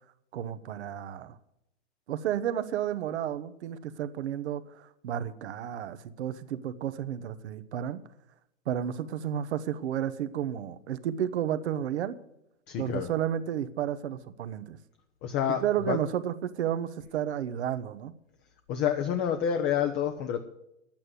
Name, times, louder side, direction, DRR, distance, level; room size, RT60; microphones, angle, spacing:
voice 1, 0.3-1.4 2.1-8.0 8.7-12.1 12.8-14.8 15.6-18.1, right 10 dB, 65° right, 13 dB, 1.0 m, -32 dB
voice 2, 12.7-13.1 15.2-16.0 18.7-20.4, left 8 dB, 30° left, 7 dB, 0.9 m, -28 dB
11.0 x 8.8 x 7.9 m, 0.83 s
hypercardioid pair, 115°, 37 cm